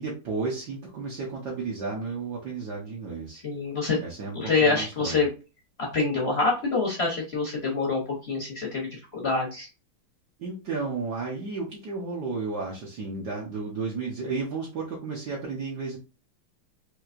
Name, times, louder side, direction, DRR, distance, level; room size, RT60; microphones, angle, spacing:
voice 1, 0.0-3.4 4.0-5.2 10.4-16.0, right 4 dB, 60° right, -4 dB, 1.2 m, -33 dB
voice 2, 3.4-4.0 4.3-5.3 5.9-8.0 8.3-9.7, left 4 dB, 65° left, -2 dB, 0.6 m, -26 dB
4.5 x 2.7 x 2.5 m, 0.32 s
omnidirectional pair, 2.3 m